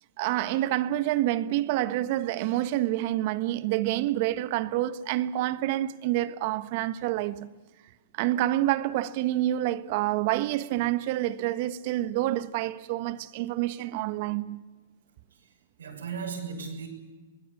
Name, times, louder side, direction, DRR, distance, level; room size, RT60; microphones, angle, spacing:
voice 1, 0.2-7.5 8.1-14.6, right 14 dB, 50° right, 1.3 m, -28 dB
voice 2, 15.8-16.9, right 5 dB, 85° right, 6.7 m, -36 dB
24.5 x 20.0 x 8.5 m
hypercardioid pair, 125°, 0 cm